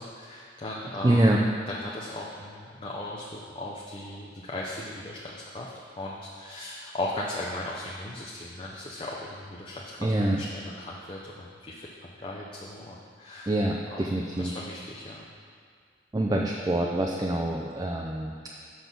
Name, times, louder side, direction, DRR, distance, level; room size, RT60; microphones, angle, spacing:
voice 1, 0.0-13.6 13.9-14.1 14.4-15.3, left 1 dB, 30° left, -4 dB, 0.6 m, -38 dB
voice 2, 1.0-1.4 10.0-10.4 13.5-14.5 16.1-18.3, right 1 dB, 20° right, -1 dB, 0.4 m, -25 dB
6.2 x 6.0 x 5.3 m, 2.2 s
head